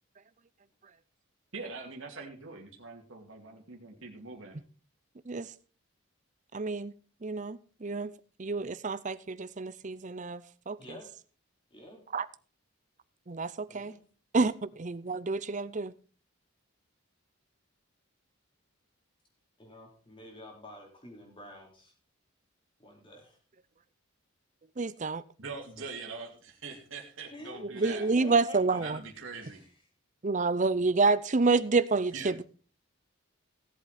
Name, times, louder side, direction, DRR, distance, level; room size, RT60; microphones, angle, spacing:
voice 1, 1.5-4.6 25.4-28.0 28.8-29.6 32.1-32.3, right 4 dB, 65° right, 1 dB, 2.5 m, -43 dB
voice 2, 6.5-6.9 7.2-8.1 8.4-10.8 12.1-12.3 13.3-13.9 14.3-15.9 24.8-25.2 27.6-29.0 30.2-32.4, right 3 dB, 35° right, 16 dB, 0.5 m, -28 dB
voice 3, 10.8-11.1 11.7-12.0 13.7-14.0 19.6-21.9 22.8-23.4 27.3-28.9 29.4-29.7, left 1 dB, 25° left, 1 dB, 3.8 m, -49 dB
17.0 x 7.9 x 4.2 m, 0.40 s
head